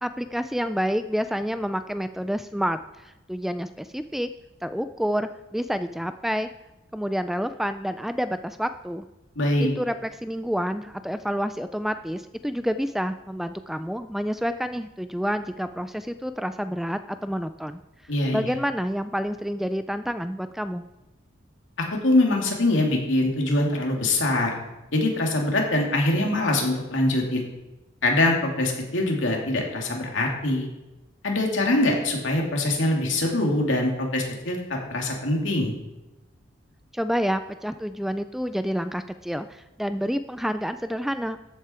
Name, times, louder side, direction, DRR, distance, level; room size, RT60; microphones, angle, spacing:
voice 1, 0.0-4.3 4.6-6.5 6.9-9.1 9.6-17.8 18.3-20.8 36.9-41.4, equal, ahead, 10 dB, 0.3 m, -28 dB
voice 2, 9.4-9.7 18.1-18.4 21.8-24.6 24.9-27.4 28.0-30.7 31.2-35.7, left 2 dB, 75° left, 0 dB, 2.6 m, -23 dB
13.5 x 8.3 x 4.4 m, 1.0 s
head